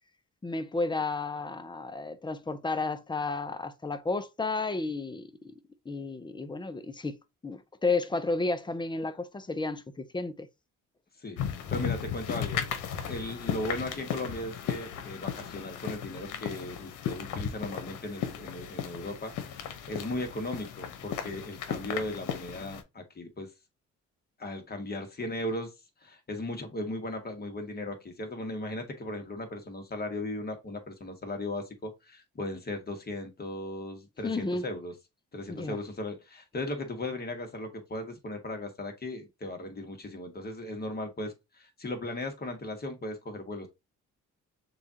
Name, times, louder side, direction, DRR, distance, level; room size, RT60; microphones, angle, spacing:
voice 1, 0.4-5.3 5.9-7.2 7.4-10.5 34.2-34.6 35.5-35.8, left 3 dB, 15° left, 0.6 m, -32 dB
voice 2, 11.2-12.8 13.1-23.5 24.4-25.7 26.0-34.9 35.3-43.7, left 1 dB, 30° left, 1.4 m, -37 dB
sound 1, 11.4-22.8, left 8 dB, 85° left, 0.9 m, -36 dB
6.6 x 2.4 x 2.8 m
cardioid pair, 90°, 30 cm